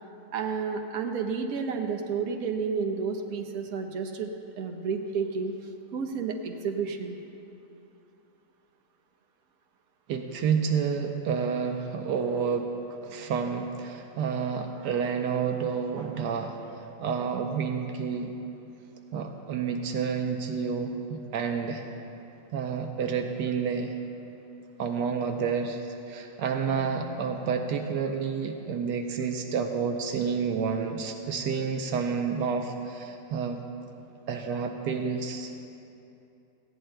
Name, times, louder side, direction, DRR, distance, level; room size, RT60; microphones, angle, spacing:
voice 1, 0.3-5.5 5.9-7.2, right 5 dB, 65° right, 4 dB, 1.3 m, -31 dB
voice 2, 10.1-16.6 17.0-18.4 19.1-21.8 22.5-24.0 24.8-33.6 34.3-35.5, right 6 dB, 80° right, 4 dB, 1.3 m, -29 dB
19.0 x 15.5 x 2.2 m, 2.8 s
omnidirectional pair, 1.7 m